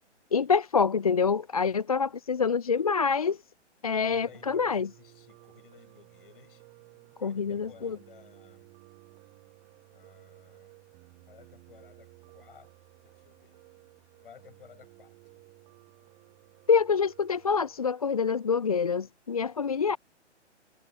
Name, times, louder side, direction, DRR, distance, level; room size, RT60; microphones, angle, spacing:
voice 1, 0.3-3.4 3.8-4.9 7.2-8.0 16.7-20.0, left 5 dB, 30° left, 0.4 m, -26 dB
voice 2, 1.7-2.1 3.9-6.9 7.2-8.7 9.9-10.7 11.3-12.7 13.0-13.6 14.2-15.4, left 8 dB, 50° left, 6.5 m, -56 dB
Piano, 4.1-17.8, right 30 dB, 25° right, 7.0 m, -56 dB
figure-of-eight pair, 130°, 36 cm